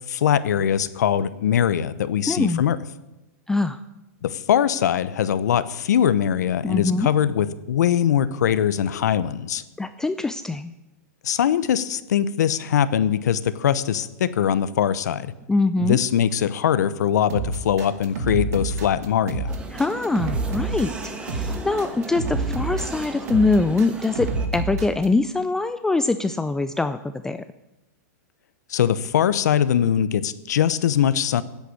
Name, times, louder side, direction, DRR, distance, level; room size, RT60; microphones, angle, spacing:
voice 1, 0.1-2.8 4.2-9.6 11.2-15.3 15.8-19.5 28.7-31.4, left 9 dB, 80° left, 16 dB, 0.8 m, -22 dB
voice 2, 2.3-2.6 3.5-3.8 6.6-7.1 9.8-10.7 15.5-16.0 19.7-27.4, left 3 dB, 5° left, 11 dB, 0.3 m, -23 dB
sound 1, 17.3-25.1, right 3 dB, 70° right, 2.1 m, -28 dB
sound 2, 19.5-24.5, right 2 dB, 10° right, 1.4 m, -36 dB
10.5 x 8.3 x 9.7 m, 1.0 s
hypercardioid pair, 140°, 9 cm